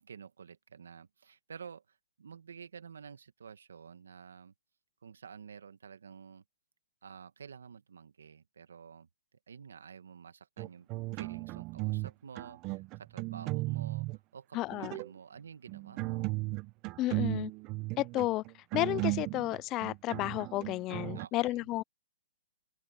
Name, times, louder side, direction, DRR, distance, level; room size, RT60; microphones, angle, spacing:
voice 1, 0.0-4.5 5.0-6.4 7.0-9.1 9.5-10.9 11.1-14.1 14.3-16.2 21.1-21.7, right 6 dB, 85° right, 1.8 m, -50 dB
sound 1, 10.6-12.1 12.3-14.2 14.7-15.1 15.7-21.3, right 23 dB, 30° right, 0.7 m, -36 dB
voice 2, 14.5-15.0 17.0-17.5 18.0-18.4 18.7-21.8, left 17 dB, 30° left, 0.4 m, -32 dB
open air
hypercardioid pair, 140°, 0 cm